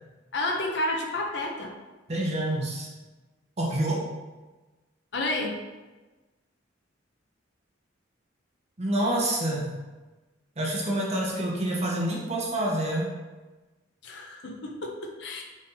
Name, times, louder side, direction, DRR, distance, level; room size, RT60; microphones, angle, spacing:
voice 1, 0.3-1.7 5.1-5.6 14.0-15.4, left 2 dB, 60° left, 1 dB, 0.6 m, -30 dB
voice 2, 2.1-2.9 3.6-4.0 8.8-9.7 10.6-13.1, right 1 dB, 30° right, -3 dB, 0.7 m, -27 dB
4.1 x 2.7 x 3.7 m, 1.2 s
head